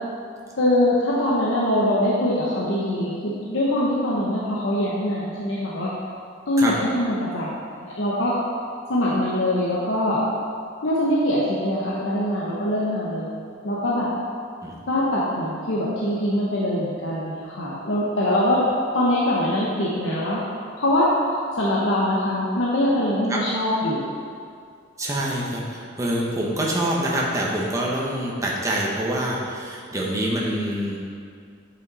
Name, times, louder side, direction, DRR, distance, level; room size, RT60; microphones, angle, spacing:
voice 1, 0.6-5.9 6.5-8.3 8.9-10.2 10.8-14.1 14.9-18.6 18.9-20.4 20.8-21.1 21.5-24.1, left 1 dB, 70° left, -6 dB, 1.0 m, -23 dB
voice 2, 25.0-25.6 26.0-31.0, right 1 dB, 15° right, -4 dB, 1.0 m, -25 dB
8.1 x 5.4 x 4.1 m, 2.2 s
head